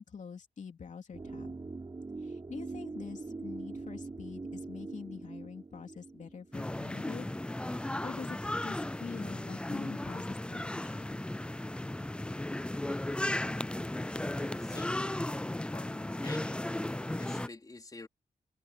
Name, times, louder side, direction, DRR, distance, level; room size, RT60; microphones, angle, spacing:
voice 1, 0.0-1.6 2.2-7.3 7.6-11.2, left 6 dB, 60° left, 3.0 m, -46 dB
sound 1, 1.1-7.1 7.4-7.5, right 3 dB, 30° right, 5.3 m, -43 dB
sound 2, 6.5-17.5, left 1 dB, 5° left, 0.4 m, -35 dB
voice 2, 14.3-15.2 15.7-16.6 17.2-18.1, left 3 dB, 25° left, 4.2 m, -47 dB
wide cardioid pair, 145°, 15 cm